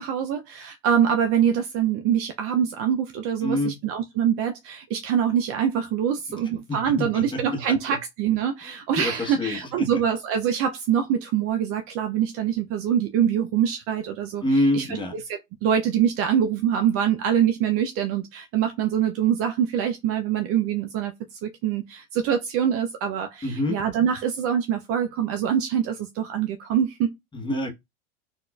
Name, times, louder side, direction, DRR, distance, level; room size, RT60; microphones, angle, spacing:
voice 1, 0.0-14.9 15.1-27.1, right 9 dB, 45° right, 0.5 m, -24 dB
voice 2, 3.4-3.7 6.4-8.0 9.0-9.9 14.4-15.2 23.4-23.8 27.3-27.7, left 1 dB, 15° left, 0.9 m, -27 dB
4.1 x 2.4 x 2.3 m
supercardioid pair, 110°, 31 cm